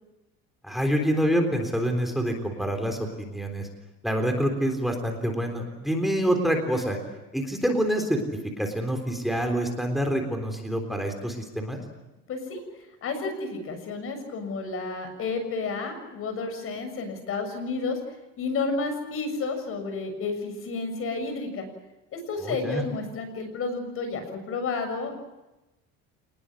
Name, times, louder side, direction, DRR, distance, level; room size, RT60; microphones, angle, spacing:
voice 1, 0.6-3.7 4.0-7.0 7.3-8.2 8.6-11.8 22.4-22.8, equal, ahead, 4 dB, 3.8 m, -26 dB
voice 2, 12.3-12.6 13.0-18.0 18.4-21.7 22.1-25.2, left 4 dB, 45° left, 7 dB, 7.0 m, -31 dB
28.5 x 20.5 x 7.8 m, 1.0 s
cardioid pair, 140°, 30 cm